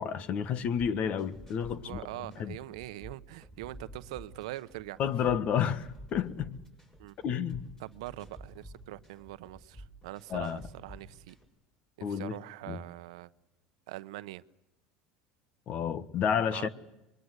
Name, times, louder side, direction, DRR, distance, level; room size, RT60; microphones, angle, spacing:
voice 1, 0.0-2.0 2.4-2.6 5.0-6.6 7.2-7.6 10.3-10.6 12.0-12.4 12.7-12.8 15.7-16.7, left 8 dB, 45° left, 1.6 m, -30 dB
sound 1, 0.8-11.4, right 1 dB, 15° left, 7.6 m, -50 dB
voice 2, 1.8-5.1 7.0-7.1 7.8-11.3 12.1-13.3 13.9-14.4 16.5-16.7, right 17 dB, 85° right, 0.9 m, -43 dB
25.0 x 22.5 x 8.1 m
supercardioid pair, 120°, 3 cm